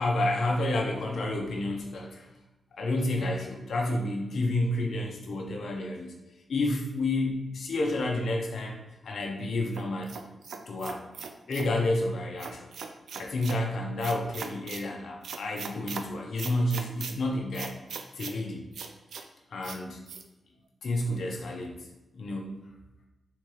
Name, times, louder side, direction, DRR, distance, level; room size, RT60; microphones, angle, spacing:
voice 1, 0.0-2.3 2.8-6.1 6.5-8.8 9.0-10.2 10.7-11.0 11.5-12.7 13.1-17.8 18.2-18.6 19.5-20.0 20.8-21.7 22.1-22.6, left 2 dB, 75° left, 0 dB, 0.7 m, -30 dB
sound 1, 9.7-11.7 12.4-13.6 14.0-14.8 15.2-16.0 16.4-17.1 17.5-18.4 18.7-19.2 19.6-19.8 20.1-20.2, right 5 dB, 85° right, 0.4 m, -39 dB
3.5 x 3.0 x 4.8 m, 1.1 s
cardioid pair, 75°, 0 cm